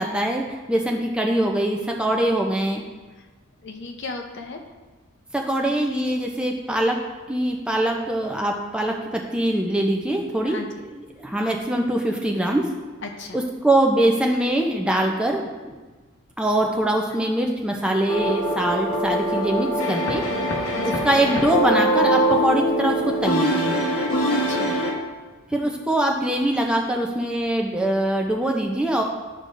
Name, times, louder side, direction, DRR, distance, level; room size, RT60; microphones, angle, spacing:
voice 1, 0.0-2.8 5.3-7.0 7.3-10.6 10.9-12.7 13.3-15.7 16.4-20.3 20.8-23.7 25.5-29.0, right 1 dB, 5° right, 1 dB, 0.5 m, -23 dB
voice 2, 3.6-4.6 10.4-10.7 13.0-13.4 20.7-21.0 24.5-24.8, left 3 dB, 55° left, 3 dB, 0.7 m, -35 dB
sound 1, 18.1-24.9, equal, 80° left, 1.1 m, -23 dB
10.5 x 5.1 x 2.6 m, 1.3 s
head